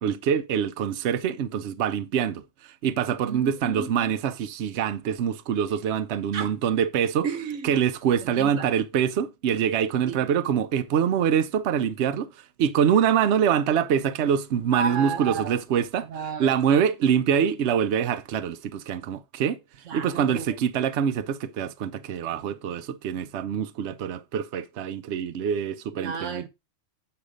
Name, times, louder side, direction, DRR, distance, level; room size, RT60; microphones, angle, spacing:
voice 1, 0.0-7.3 7.6-16.1 16.4-19.6 19.9-26.4, right 8 dB, 70° right, 0.9 m, -25 dB
voice 2, 3.2-4.1 6.3-6.6 7.2-7.7 8.2-8.7 10.1-10.2 14.7-15.6 16.0-16.6 19.9-20.5 25.9-26.5, right 6 dB, 85° right, 1.3 m, -32 dB
8.6 x 5.2 x 5.0 m
omnidirectional pair, 1.2 m